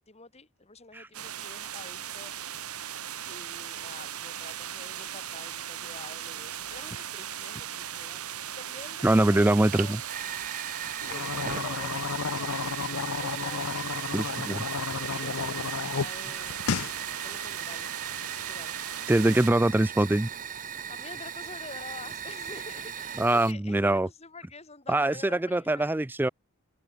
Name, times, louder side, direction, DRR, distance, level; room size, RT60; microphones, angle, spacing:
voice 1, 0.0-2.5 3.3-8.2 8.5-10.0 11.0-12.8 13.2-16.6 17.2-17.9 18.3-18.8 19.2-19.6 20.9-25.9, left 3 dB, 30° left, 3.2 m, -47 dB
sound 1, 1.1-19.5, right 10 dB, 90° right, 3.5 m, -38 dB
voice 2, 9.0-10.0 14.1-14.6 19.1-20.3 23.2-24.1 24.9-26.3, right 1 dB, 10° right, 0.4 m, -23 dB
Fire, 9.6-23.5, right 7 dB, 35° right, 1.2 m, -39 dB
sound 2, 11.0-16.1 16.4-16.9, left 5 dB, 70° left, 0.7 m, -32 dB
head